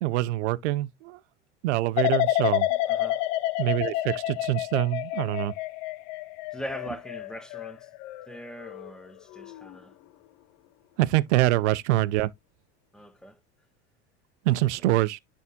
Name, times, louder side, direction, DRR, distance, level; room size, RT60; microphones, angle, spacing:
voice 1, 0.0-1.2 1.6-2.7 3.6-5.5 11.0-12.3 14.4-15.2, right 16 dB, 70° right, 0.6 m, -25 dB
sound 1, 2.0-8.9 9.3-9.7, left 14 dB, 55° left, 0.7 m, -29 dB
voice 2, 2.9-3.2 6.5-7.9 8.3-9.9 11.4-11.5 12.9-13.4 14.5-14.6, equal, ahead, 1.2 m, -41 dB
10.5 x 3.6 x 2.8 m
hypercardioid pair, 80°, 36 cm